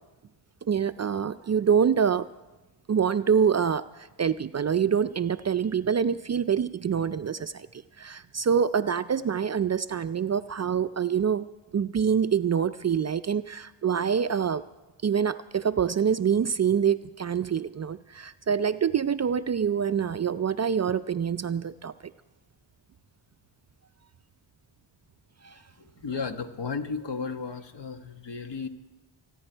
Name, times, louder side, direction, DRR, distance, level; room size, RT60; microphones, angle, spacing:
voice 1, 0.7-2.3 2.9-11.5 11.7-14.6 15.0-22.1 25.4-25.5, right 7 dB, 35° right, 12 dB, 0.4 m, -26 dB
voice 2, 25.8-28.7, left 5 dB, 60° left, 6 dB, 1.4 m, -34 dB
27.0 x 9.9 x 4.5 m, 1.1 s
cardioid pair, 55°, 48 cm